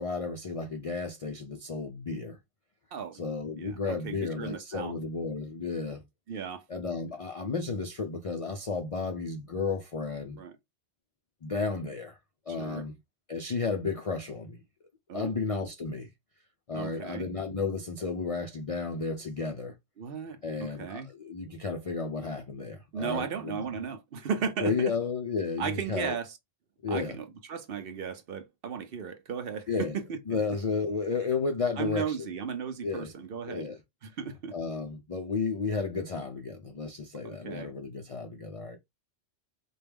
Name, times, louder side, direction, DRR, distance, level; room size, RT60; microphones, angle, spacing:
voice 1, 0.0-2.4 3.1-6.0 6.7-10.4 11.4-12.2 12.5-13.0 13.3-14.6 15.1-16.1 16.7-19.7 20.4-23.6 24.6-26.1 26.8-27.2 29.7-30.0 30.3-32.2 32.8-33.1 33.5-33.8 34.5-38.8, left 4 dB, 55° left, 0.4 m, -33 dB
voice 2, 2.9-3.2 3.6-4.9 6.3-6.6 10.4-10.6 12.5-12.8 15.1-15.3 16.7-17.3 20.0-21.1 22.9-24.9 25.6-26.4 26.9-30.2 31.8-33.7 34.0-34.5 37.2-37.7, right 6 dB, 60° right, 0.8 m, -35 dB
4.5 x 2.2 x 3.4 m
omnidirectional pair, 1.2 m